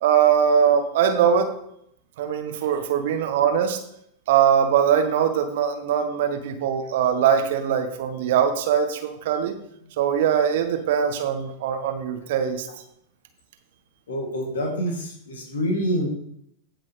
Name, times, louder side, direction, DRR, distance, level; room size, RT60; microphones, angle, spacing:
voice 1, 0.0-1.5 2.2-3.8 4.3-9.5 10.0-12.7, right 8 dB, 55° right, 7 dB, 1.2 m, -21 dB
voice 2, 14.1-16.1, equal, 65° left, 1 dB, 2.6 m, -26 dB
16.0 x 6.0 x 3.3 m, 0.72 s
figure-of-eight pair, 90°, 0 cm